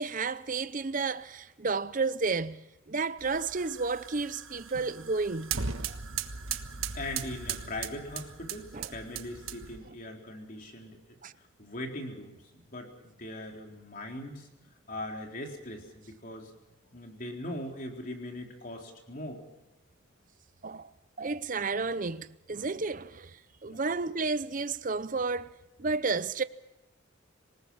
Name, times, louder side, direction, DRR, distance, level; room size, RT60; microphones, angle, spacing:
voice 1, 0.0-5.6 5.9-6.0 8.7-8.9 11.2-11.3 20.6-20.9 21.2-25.5 25.8-26.4, right 4 dB, 40° right, 0.7 m, -32 dB
sound 1, 3.2-9.9, right 6 dB, 90° right, 1.4 m, -38 dB
voice 2, 6.9-11.0 11.4-14.5 14.9-16.5 16.9-19.4 23.6-23.8, left 1 dB, 45° left, 4.1 m, -40 dB
26.5 x 19.0 x 5.6 m
head